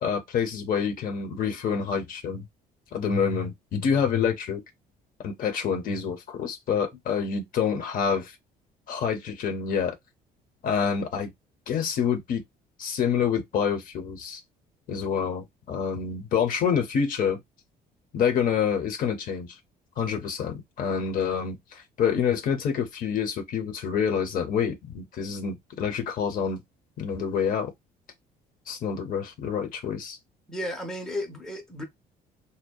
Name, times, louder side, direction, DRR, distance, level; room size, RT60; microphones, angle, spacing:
voice 1, 0.0-2.5 2.9-4.6 5.2-8.3 8.9-10.0 10.6-11.3 11.7-12.4 12.8-14.4 14.9-17.4 18.1-19.5 20.0-26.6 27.0-27.7 28.7-30.2, left 7 dB, 55° left, 0.7 m, -27 dB
voice 2, 30.5-31.8, left 1 dB, 5° left, 0.6 m, -33 dB
2.5 x 2.1 x 2.2 m
cardioid pair, 110°, 17 cm